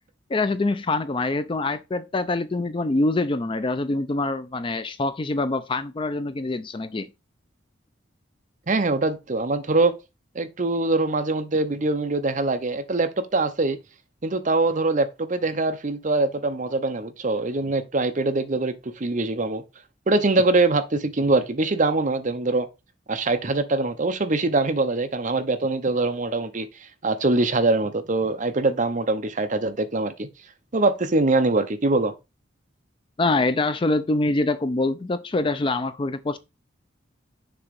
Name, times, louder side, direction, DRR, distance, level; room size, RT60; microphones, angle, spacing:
voice 1, 0.3-7.1 33.2-36.4, left 2 dB, 25° left, 0.4 m, -25 dB
voice 2, 8.7-9.9 10.3-13.8 14.2-19.6 20.1-22.7 23.1-30.3 30.7-32.1, right 2 dB, 40° right, 0.7 m, -23 dB
6.8 x 3.0 x 5.2 m
head